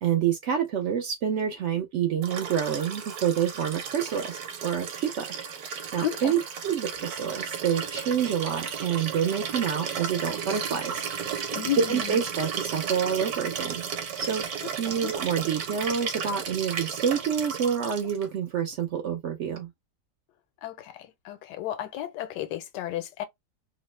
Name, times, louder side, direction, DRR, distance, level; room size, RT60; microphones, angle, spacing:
voice 1, 0.0-5.3 5.6-11.0 11.3-11.4 11.9-13.8 14.2-14.4 14.7-19.7, right 8 dB, 85° right, 0.6 m, -28 dB
Liquid, 2.2-18.3 19.6-19.7, right 7 dB, 65° right, 1.1 m, -34 dB
voice 2, 6.0-6.4 11.5-12.1 14.9-15.1 20.6-20.9 21.2-23.2, left 12 dB, 85° left, 1.2 m, -32 dB
3.0 x 2.1 x 3.1 m
omnidirectional pair, 1.8 m